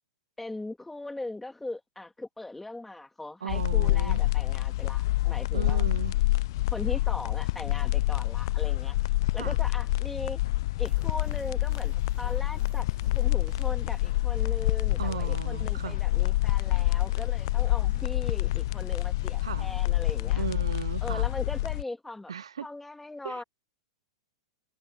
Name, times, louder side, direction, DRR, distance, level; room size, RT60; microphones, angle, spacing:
voice 1, 0.4-5.8 6.7-10.4 10.8-12.9 13.1-20.4 21.0-22.3 22.6-23.4, left 2 dB, 5° left, 2.7 m, -39 dB
voice 2, 3.4-4.2 5.5-6.1 9.4-9.6 15.0-16.0 19.4-19.7 20.3-21.3 22.3-22.7 23.2-23.4, right 7 dB, 70° right, 0.7 m, -36 dB
sound 1, 3.5-21.8, left 18 dB, 50° left, 0.5 m, -27 dB
sound 2, 10.8-20.3, right 14 dB, 35° right, 1.4 m, -53 dB
figure-of-eight pair, 100°, 3 cm